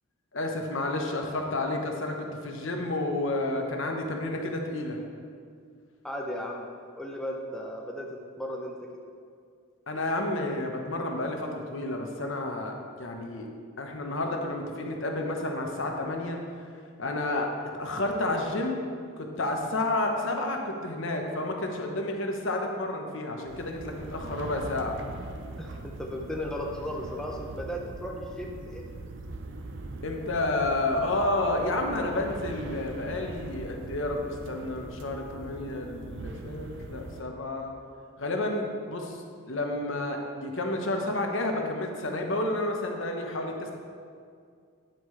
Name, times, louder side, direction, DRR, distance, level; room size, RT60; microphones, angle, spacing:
voice 1, 0.3-5.0 9.9-13.5 13.8-16.4 17.0-18.8 19.2-25.0 30.0-37.7 38.2-39.2 39.5-43.7, left 2 dB, 60° left, 2 dB, 0.9 m, -30 dB
voice 2, 6.0-6.7 7.0-8.1 8.4-8.7 25.6-28.9, equal, 5° left, -1 dB, 0.5 m, -35 dB
sound 1, 23.5-37.2, right 2 dB, 55° right, 0.6 m, -41 dB
9.3 x 8.2 x 3.2 m, 2.3 s
head